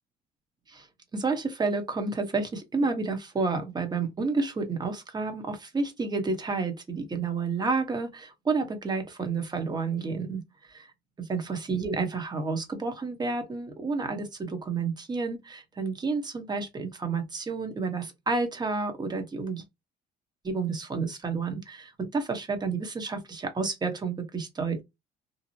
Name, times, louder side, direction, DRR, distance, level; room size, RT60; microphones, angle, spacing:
voice 1, 1.1-10.4 10.7-10.9 11.2-19.6 20.4-24.8, right 4 dB, 25° right, 0.9 m, -30 dB
2.7 x 2.0 x 2.7 m
cardioid pair, 110°, 17 cm